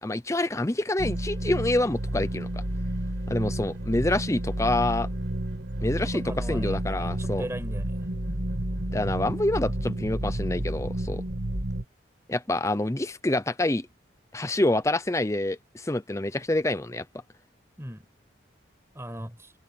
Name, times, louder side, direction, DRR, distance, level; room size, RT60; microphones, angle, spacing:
voice 1, 0.0-2.6 3.3-5.1 5.8-7.5 8.9-11.2 12.3-13.9 14.3-17.0, left 1 dB, 15° left, 0.6 m, -27 dB
sound 1, 1.0-11.8, right 1 dB, 70° right, 2.6 m, -30 dB
voice 2, 5.8-8.0 17.8-18.1 18.9-19.5, equal, 15° right, 6.1 m, -39 dB
head